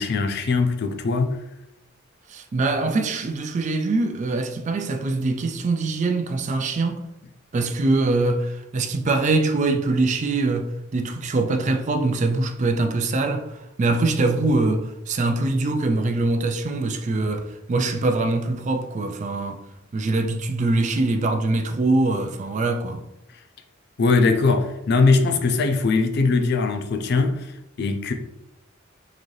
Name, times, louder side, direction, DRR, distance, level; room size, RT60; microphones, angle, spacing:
voice 1, 0.0-1.4 24.0-27.5 27.8-28.1, left 3 dB, 55° left, 0.4 m, -21 dB
voice 2, 2.3-7.0 7.5-19.6 19.9-23.0, right 2 dB, 35° right, 0.3 m, -23 dB
3.9 x 2.6 x 3.1 m
head